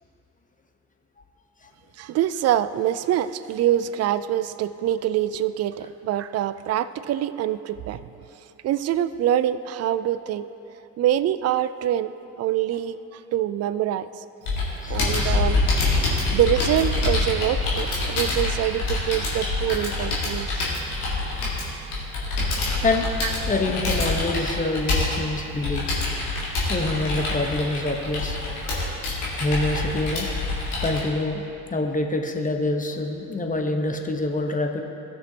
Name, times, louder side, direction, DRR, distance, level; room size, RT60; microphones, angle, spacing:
voice 1, 2.0-8.1 8.6-10.5 11.0-14.2 14.9-15.6 16.3-20.6 23.2-23.3, right 11 dB, 35° right, 14 dB, 0.4 m, -25 dB
Computer keyboard, 14.5-31.0, left 2 dB, 85° left, 1.9 m, -26 dB
voice 2, 23.4-25.9 26.7-28.4 29.4-30.3 30.8-31.4 31.7-34.8, left 2 dB, 20° left, 3 dB, 1.1 m, -26 dB
16.5 x 6.2 x 2.9 m, 2.9 s
hypercardioid pair, 55°, 44 cm